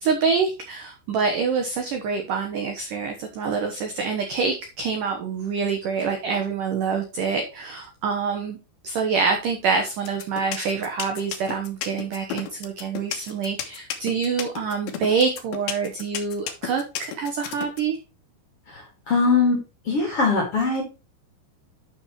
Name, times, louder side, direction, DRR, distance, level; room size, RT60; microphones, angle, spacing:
voice 1, 0.0-8.6 8.8-18.0, right 5 dB, 75° right, 4 dB, 1.9 m, -26 dB
sound 1, 10.1-17.8, left 9 dB, 65° left, 2.6 m, -31 dB
voice 2, 18.7-19.6 19.8-20.8, left 4 dB, 45° left, 2 dB, 2.1 m, -21 dB
11.5 x 6.1 x 3.1 m, 0.30 s
omnidirectional pair, 5.6 m